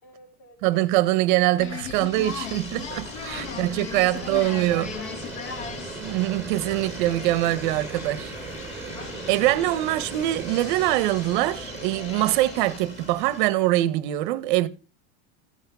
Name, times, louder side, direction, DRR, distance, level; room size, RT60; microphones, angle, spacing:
voice 1, 0.0-0.8 1.4-1.5 3.4-5.6, left 4 dB, 85° left, 2.9 m, -46 dB
voice 2, 0.6-4.9 6.0-8.3 9.3-14.7, right 16 dB, 40° right, 0.6 m, -23 dB
sound 1, 1.6-12.8, left 7 dB, 70° left, 1.6 m, -39 dB
sound 2, 1.9-13.3, right 5 dB, 5° right, 0.8 m, -41 dB
sound 3, 2.1-13.5, left 1 dB, 15° left, 1.5 m, -42 dB
14.5 x 5.7 x 5.8 m
supercardioid pair, 180°, 38 cm